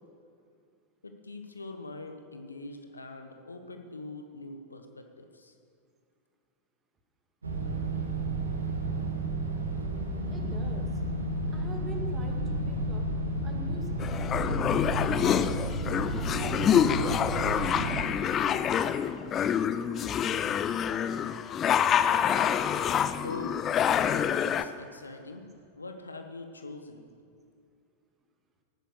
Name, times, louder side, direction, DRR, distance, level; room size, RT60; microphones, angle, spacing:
voice 1, 1.0-5.5 23.2-23.7 24.2-27.1, left 2 dB, 80° left, 5 dB, 1.2 m, -43 dB
sound 1, 7.4-18.0, right 1 dB, 75° right, 1.8 m, -32 dB
voice 2, 10.3-11.0 11.5-13.1 13.4-15.4 15.8-19.0, right 4 dB, 20° right, 3 dB, 2.1 m, -45 dB
sound 2, 14.0-24.6, left 9 dB, 30° left, 0.5 m, -27 dB
18.0 x 9.3 x 6.6 m, 2.5 s
figure-of-eight pair, 90°, 0 cm